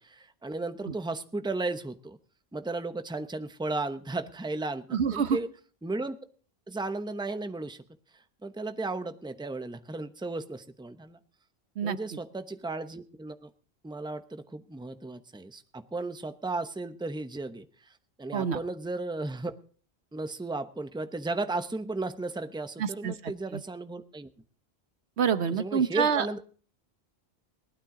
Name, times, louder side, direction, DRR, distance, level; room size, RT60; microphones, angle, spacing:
voice 1, 0.0-2.2 2.5-5.5 5.8-6.2 6.7-7.8 8.4-11.2 11.8-13.5 13.8-17.9 18.2-19.5 20.1-24.3 25.6-26.4, right 2 dB, 5° right, 9 dB, 0.8 m, -35 dB
voice 2, 4.9-5.4 11.8-12.0 18.3-18.6 22.8-23.6 25.2-26.3, right 7 dB, 80° right, 12 dB, 1.1 m, -27 dB
19.5 x 12.5 x 3.8 m, 0.42 s
omnidirectional pair, 1.1 m